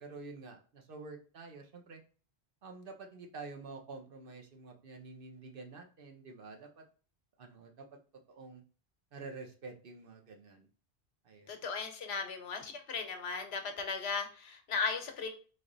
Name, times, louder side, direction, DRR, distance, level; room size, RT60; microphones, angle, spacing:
voice 1, 0.0-2.0 2.6-6.8 7.4-7.8 8.3-8.6 9.1-10.7 11.2-11.5, right 3 dB, 60° right, 3 dB, 0.9 m, -48 dB
voice 2, 11.5-15.3, left 5 dB, 75° left, 6 dB, 1.0 m, -36 dB
3.8 x 3.4 x 3.8 m, 0.39 s
omnidirectional pair, 1.1 m